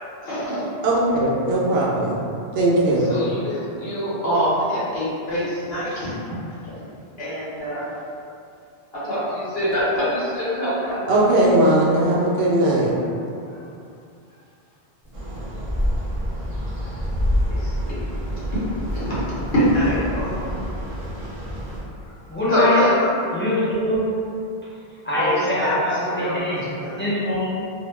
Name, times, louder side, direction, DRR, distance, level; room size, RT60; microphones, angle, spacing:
voice 1, 0.2-0.7 3.0-6.1 6.5-6.7 7.2-7.9 8.9-11.0 13.5-13.6 16.8-16.9 17.5-18.0 18.5-18.6 18.9-19.2 19.5-20.5 22.5-23.1 25.1-25.7 26.1-26.4 26.7-27.0, equal, 70° left, -10 dB, 1.0 m, -24 dB
voice 2, 0.8-2.2 2.5-3.1 11.1-12.9, right 1 dB, 80° right, -5 dB, 0.8 m, -18 dB
sound 1, 15.1-15.3 15.6-16.7 17.1-17.7 18.1-19.1 19.6-19.7 19.9-21.0, equal, 45° left, 0.8 m, -26 dB
sound 2, 15.1-21.8, equal, 45° right, 0.5 m, -31 dB
voice 3, 22.3-22.8 23.3-24.0 25.0-26.6 27.0-27.5, equal, 20° left, -11 dB, 0.3 m, -23 dB
2.3 x 2.1 x 3.1 m, 2.5 s
omnidirectional pair, 1.0 m